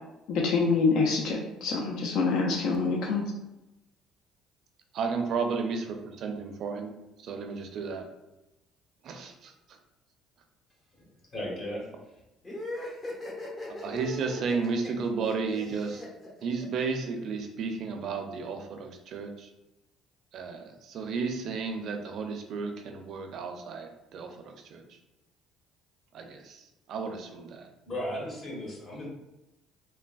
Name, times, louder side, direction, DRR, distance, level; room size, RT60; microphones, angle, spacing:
voice 1, 0.3-3.3, left 4 dB, 70° left, 0 dB, 0.4 m, -26 dB
voice 2, 2.7-3.1 4.9-6.9 7.2-8.0 9.0-9.5 13.8-16.0 16.4-19.5 20.3-24.8 26.1-26.6 26.9-27.7, right 4 dB, 60° right, 4 dB, 0.4 m, -33 dB
voice 3, 11.3-11.9 27.8-29.1, left 1 dB, 50° left, -5 dB, 1.4 m, -35 dB
sound 1, 12.4-17.1, left 1 dB, 35° left, 0.8 m, -39 dB
3.3 x 2.1 x 2.3 m, 0.95 s
supercardioid pair, 80°, 0 cm